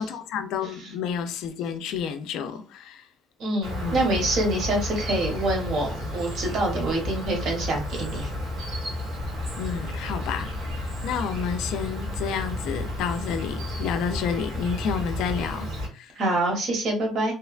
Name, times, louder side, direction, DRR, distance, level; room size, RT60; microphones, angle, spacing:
voice 1, 0.0-3.1 3.8-4.1 9.6-16.2, left 7 dB, 70° left, 0.4 m, -30 dB
voice 2, 3.4-5.9 6.1-8.3 16.1-17.3, right 2 dB, 45° right, 0.8 m, -26 dB
Insect, 3.6-15.9, left 1 dB, 80° right, 1.2 m, -32 dB
2.8 x 2.2 x 2.4 m
cardioid pair, 180°, 0 cm